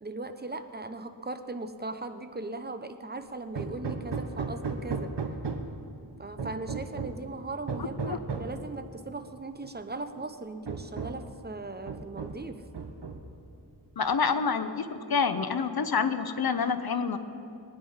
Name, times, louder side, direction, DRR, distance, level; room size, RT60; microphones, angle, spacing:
voice 1, 0.0-5.1 6.2-12.6, right 2 dB, 25° right, 9 dB, 0.8 m, -38 dB
Hammer, 3.6-5.8 6.4-7.3 7.7-8.6 9.6-9.7 10.1-10.2 10.7-11.3 11.9-12.5 12.7-13.4, right 4 dB, 85° right, 1.1 m, -35 dB
voice 2, 14.0-17.2, left 5 dB, 65° left, 10 dB, 0.9 m, -27 dB
20.0 x 9.5 x 5.7 m, 2.6 s
wide cardioid pair, 70°, 40 cm